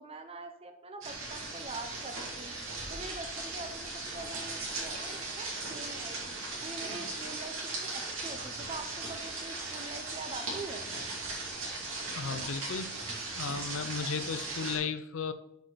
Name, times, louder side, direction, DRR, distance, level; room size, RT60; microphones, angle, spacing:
voice 1, 0.0-2.5 2.9-6.2 6.6-10.9, right 2 dB, 30° right, 6 dB, 0.6 m, -44 dB
sound 1, 1.0-14.8, right 3 dB, 75° right, 2.6 m, -38 dB
voice 2, 12.1-12.9 13.3-15.3, left 5 dB, 75° left, 11 dB, 0.6 m, -35 dB
8.1 x 4.8 x 4.1 m, 0.78 s
head